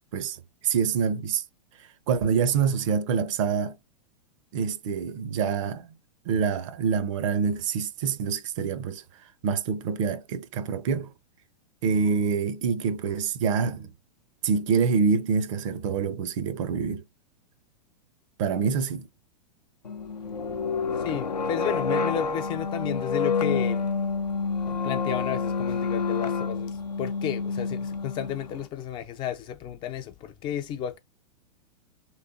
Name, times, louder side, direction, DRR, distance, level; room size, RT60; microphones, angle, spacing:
voice 1, 0.6-1.4 2.1-3.7 4.5-5.9 6.3-9.0 9.4-11.1 11.8-13.9 14.4-17.0 18.4-19.1, right 6 dB, 50° right, 0.6 m, -26 dB
sound 1, 19.9-28.6, left 5 dB, 85° left, 0.5 m, -28 dB
voice 2, 20.9-23.9 24.7-31.0, left 10 dB, 25° left, 0.3 m, -33 dB
3.2 x 3.1 x 2.6 m
figure-of-eight pair, 105°, 20 cm